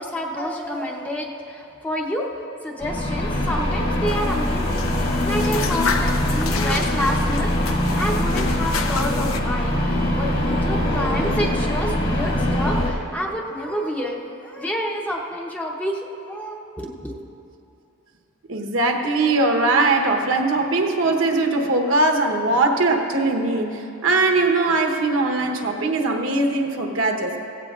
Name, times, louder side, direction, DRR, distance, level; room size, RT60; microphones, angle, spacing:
voice 1, 0.0-17.2, equal, 5° left, -1 dB, 0.8 m, -29 dB
sound 1, 2.8-12.9, left 1 dB, 45° left, 2.0 m, -23 dB
sound 2, 4.1-9.4, left 4 dB, 75° left, 0.7 m, -30 dB
voice 2, 18.5-27.3, right 2 dB, 65° right, 3 dB, 1.0 m, -20 dB
16.5 x 16.0 x 2.4 m, 2.8 s
head